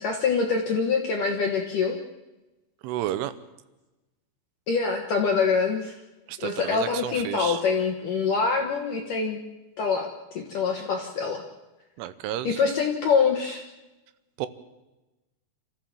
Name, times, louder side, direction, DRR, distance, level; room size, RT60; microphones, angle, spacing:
voice 1, 0.0-2.0 4.7-6.0 6.4-9.4 9.8-11.4 12.4-13.6, left 5 dB, 65° left, 2 dB, 2.1 m, -25 dB
voice 2, 2.8-3.3 6.3-7.6 10.8-10.9 12.0-12.6 14.4-14.5, right 12 dB, 80° right, 13 dB, 3.3 m, -31 dB
27.0 x 14.5 x 7.4 m, 1.1 s
omnidirectional pair, 5.7 m